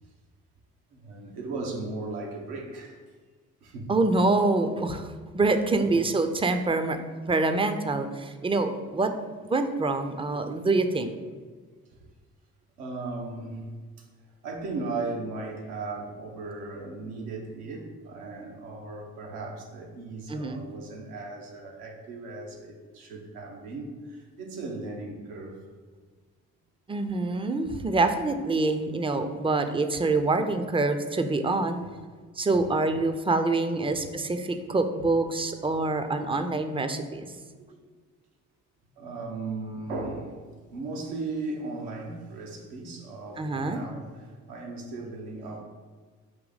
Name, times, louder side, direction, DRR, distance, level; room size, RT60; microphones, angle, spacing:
voice 1, 0.9-3.0 3.6-3.9 5.8-5.9 12.8-13.7 14.4-25.6 33.9-34.0 39.0-40.3 40.7-45.6, right 3 dB, 80° right, 0 dB, 0.9 m, -37 dB
voice 2, 3.9-5.1 5.3-7.0 7.3-9.1 9.5-11.1 20.3-20.7 26.9-31.8 32.4-37.2 43.4-43.8, right 3 dB, 15° right, 8 dB, 0.4 m, -26 dB
4.9 x 2.7 x 4.0 m, 1.5 s
hypercardioid pair, 45°, 37 cm